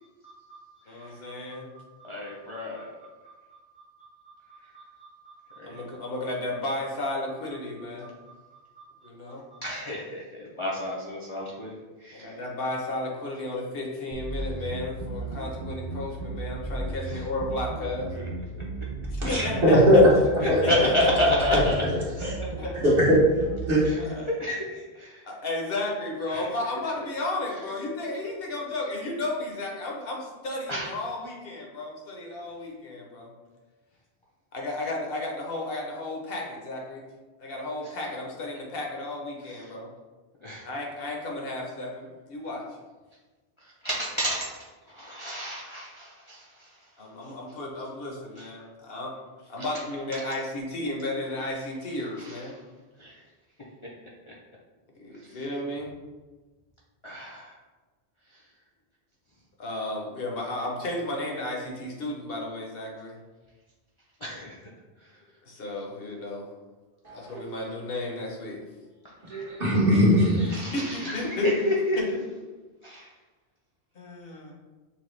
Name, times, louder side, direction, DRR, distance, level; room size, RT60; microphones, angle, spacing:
voice 1, 0.2-0.6 0.9-1.1 2.0-2.9 4.5-4.8 5.2-5.8 8.8-8.9 9.6-12.3 17.1-17.2 18.1-18.2 20.4-21.7 23.8-24.0 24.3-25.2 26.3-26.4 30.7-30.9 40.4-40.7 43.8-44.5 44.9-46.7 49.6-49.7 53.0-53.2 54.3-54.4 57.0-57.5 64.2-64.5 70.5-72.0 72.8-73.1, left 1 dB, 40° left, 0.5 m, -30 dB
voice 2, 0.9-1.7 5.6-8.1 9.0-9.5 12.1-18.1 19.1-20.0 20.4-21.1 21.5-21.6 22.3-22.8 24.0-24.3 25.2-33.3 34.5-37.0 37.4-39.9 40.6-42.7 47.0-49.1 49.4-52.6 55.0-55.9 59.6-63.2 65.4-66.5 67.1-68.6 70.3-72.2 73.9-74.5, left 2 dB, 65° left, 1.1 m, -33 dB
sound 1, 14.1-23.7, right 2 dB, 90° right, 0.9 m, -35 dB
voice 3, 19.2-20.1 20.5-20.6 22.2-22.3 22.8-23.2 23.7-23.8 67.0-67.4 69.3-70.4, equal, 60° right, 1.6 m, -19 dB
6.0 x 2.3 x 3.1 m
omnidirectional pair, 1.1 m